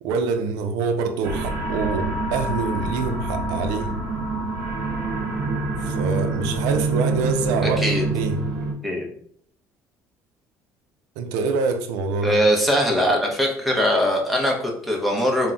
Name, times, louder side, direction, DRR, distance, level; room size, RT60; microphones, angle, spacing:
voice 1, 0.0-4.0 5.8-7.8 8.1-8.5 11.2-12.4, right 4 dB, 85° right, 0.3 m, -25 dB
sound 1, 1.2-8.7, right 2 dB, 65° right, 0.7 m, -26 dB
voice 2, 12.2-15.5, equal, ahead, 0.5 m, -21 dB
2.2 x 2.0 x 3.6 m
cardioid pair, 140°, 7 cm